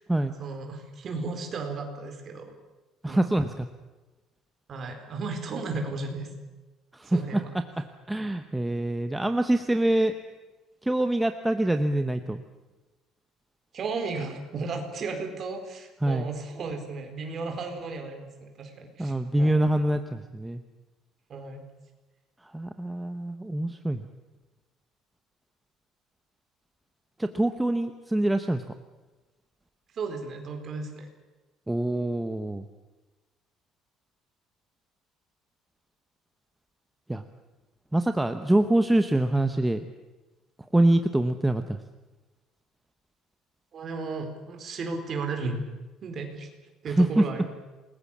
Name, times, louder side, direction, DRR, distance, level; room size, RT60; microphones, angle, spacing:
voice 1, 0.4-2.5 3.1-3.2 4.7-6.3 7.0-7.5 13.7-19.6 21.3-21.6 29.9-31.1 43.7-45.6 46.0-46.5 46.8-47.5, right 4 dB, 30° right, 4 dB, 4.3 m, -34 dB
voice 2, 3.0-3.7 6.9-7.4 7.8-10.1 10.8-12.4 16.0-16.3 19.0-20.6 22.5-24.1 27.2-28.6 31.7-32.7 37.1-37.2 37.9-39.9 40.7-41.8 47.0-47.2, right 1 dB, 5° right, 8 dB, 0.9 m, -25 dB
28.0 x 20.5 x 7.3 m, 1.2 s
cardioid pair, 175°, 0 cm